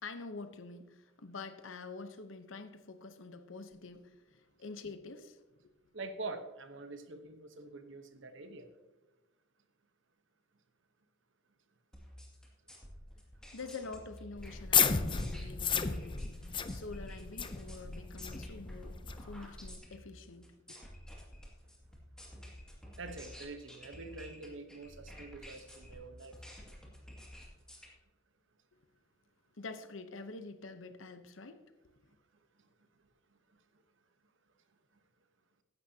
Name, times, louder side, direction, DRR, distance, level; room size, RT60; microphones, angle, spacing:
voice 1, 0.0-5.4 13.5-16.4 16.7-20.8 29.5-31.6, left 3 dB, 70° left, 0.9 m, -47 dB
voice 2, 5.9-8.7 23.0-26.4, right 3 dB, 65° right, 1.1 m, -45 dB
sound 1, 11.9-27.9, equal, 5° left, 2.3 m, -51 dB
sound 2, 14.4-19.8, left 6 dB, 25° left, 0.5 m, -33 dB
15.0 x 11.0 x 2.9 m
head